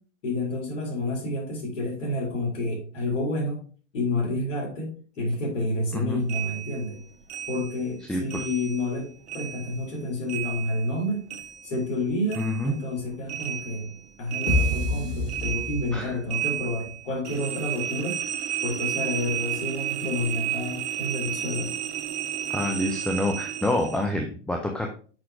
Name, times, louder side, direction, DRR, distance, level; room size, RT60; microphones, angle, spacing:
voice 1, 0.2-3.6 3.9-7.0 7.5-9.1 9.3-11.2 11.6-13.9 14.2-18.2 18.6-21.8, left 2 dB, 80° left, -2 dB, 2.9 m, -29 dB
sound 1, 6.3-9.0 9.3-12.0 12.3-24.1, right 11 dB, 65° right, 0.9 m, -33 dB
voice 2, 8.1-8.4 12.4-12.7 15.9-16.1 22.5-24.9, left 1 dB, 5° left, 2 dB, 0.4 m, -27 dB
sound 2, 14.5-16.3, left 2 dB, 55° left, 3.0 m, -27 dB
6.3 x 5.6 x 3.3 m, 0.41 s
hypercardioid pair, 115°, 37 cm